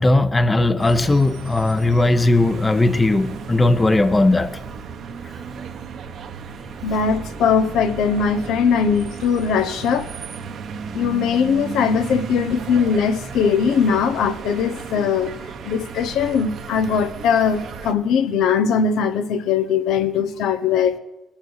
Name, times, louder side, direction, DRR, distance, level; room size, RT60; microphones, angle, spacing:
voice 1, 0.0-4.6, left 2 dB, 20° left, 0.7 m, -17 dB
sound 1, 0.8-17.9, right 6 dB, 70° right, 1.1 m, -34 dB
voice 2, 6.8-10.1 10.9-15.3 15.6-21.0, left 6 dB, 85° left, 0.8 m, -20 dB
20.0 x 7.4 x 6.3 m
cardioid pair, 90°, 0 cm